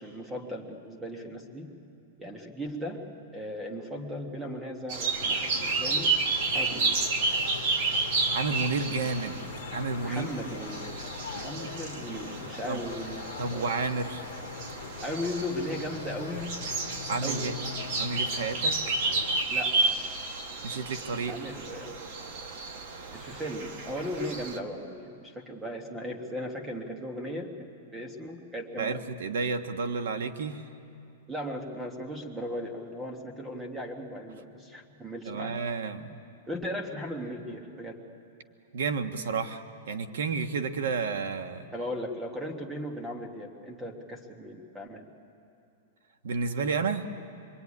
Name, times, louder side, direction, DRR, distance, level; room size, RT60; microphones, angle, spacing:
voice 1, 0.0-1.7 2.2-3.0 3.3-6.1 6.5-7.0 10.0-13.7 15.0-16.5 17.2-17.5 17.8-17.9 19.5-20.1 21.3-22.0 23.1-27.5 27.9-29.0 31.3-35.5 36.5-38.0 41.7-45.1, equal, 5° right, 4 dB, 1.5 m, -37 dB
sound 1, 4.9-24.6, right 3 dB, 40° right, 1.3 m, -31 dB
sound 2, 5.2-19.5, left 8 dB, 80° left, 1.1 m, -42 dB
voice 2, 8.3-9.4 9.7-10.3 11.3-11.7 12.7-12.8 13.4-14.3 17.1-17.6 17.9-19.0 20.6-21.4 28.8-30.7 35.2-36.2 38.7-41.7 46.2-47.1, right 4 dB, 80° right, 8 dB, 1.5 m, -31 dB
25.5 x 23.5 x 9.8 m, 2.7 s
supercardioid pair, 180°, 0 cm